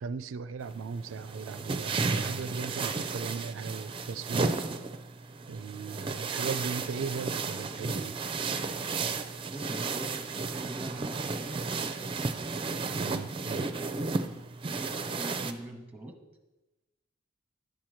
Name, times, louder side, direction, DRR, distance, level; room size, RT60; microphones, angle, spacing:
voice 1, 0.0-4.6 5.5-8.2 12.9-13.7, right 5 dB, 90° right, 13 dB, 0.4 m, -37 dB
sound 1, 0.6-15.5, right 4 dB, 25° right, 0.5 m, -33 dB
voice 2, 9.5-12.1 14.6-16.2, right 1 dB, 10° right, 4 dB, 0.9 m, -43 dB
10.0 x 4.5 x 6.4 m, 1.1 s
head